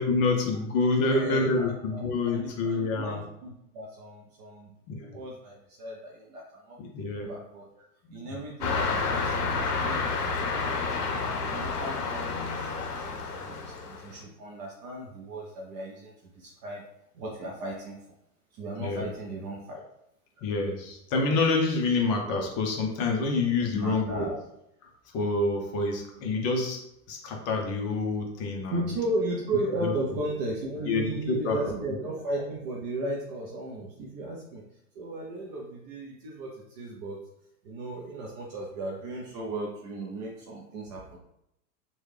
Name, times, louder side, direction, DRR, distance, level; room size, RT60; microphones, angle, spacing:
voice 1, 0.0-3.2 4.9-5.2 6.8-7.3 8.0-8.2 18.8-19.1 20.4-24.3 24.8-26.8 27.1-28.7 29.7-29.9 30.2-30.3 30.9-31.6, left 3 dB, 30° left, 1 dB, 0.7 m, -27 dB
voice 2, 1.1-4.7 5.0-6.8 7.1-7.8 8.1-10.8 11.4-16.9 17.1-18.0 18.5-19.8 23.7-24.4 28.7-34.6 34.9-37.2 37.6-41.2, right 2 dB, 30° right, -2 dB, 0.4 m, -36 dB
sound 1, 8.6-14.2, left 4 dB, 75° left, 0.8 m, -30 dB
3.1 x 2.2 x 3.3 m, 0.80 s
hypercardioid pair, 100°, 47 cm